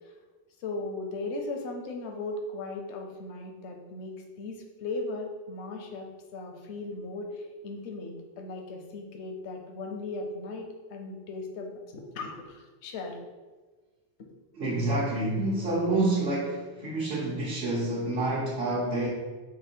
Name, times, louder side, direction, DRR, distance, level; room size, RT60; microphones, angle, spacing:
voice 1, 0.6-13.2 14.2-14.3, left 2 dB, 75° left, 3 dB, 1.0 m, -37 dB
voice 2, 14.5-19.1, right 2 dB, 60° right, -3 dB, 0.9 m, -28 dB
4.2 x 2.8 x 4.4 m, 1.4 s
omnidirectional pair, 1.2 m